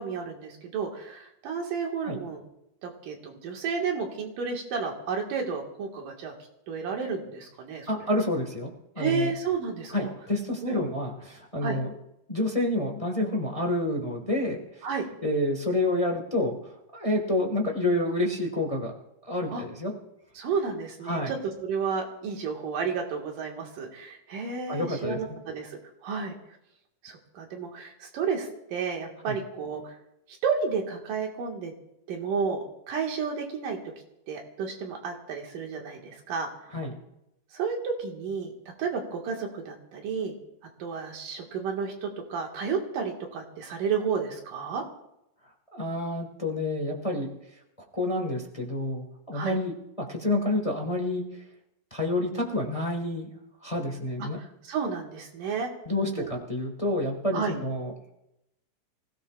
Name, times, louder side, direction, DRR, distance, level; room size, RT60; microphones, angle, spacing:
voice 1, 0.0-2.4 2.8-6.3 6.7-7.9 9.0-10.1 10.6-10.9 11.6-11.8 14.8-15.0 19.5-19.6 20.3-26.3 27.0-29.9 30.3-31.7 32.1-33.8 34.3-36.5 37.5-38.5 38.8-40.3 40.8-44.8 49.3-49.6 54.3-56.3 57.3-57.5, right 5 dB, 90° right, 1 dB, 3.5 m, -32 dB
voice 2, 7.9-8.7 8.9-9.3 9.9-11.9 12.3-14.6 15.2-16.6 16.9-18.9 19.3-19.9 21.0-21.3 24.7-25.2 29.3-29.4 36.7-36.9 45.7-47.3 47.9-51.2 51.9-53.3 53.6-54.4 55.8-57.9, left 1 dB, 25° left, 1 dB, 0.7 m, -28 dB
25.5 x 16.5 x 2.5 m, 0.87 s
omnidirectional pair, 3.7 m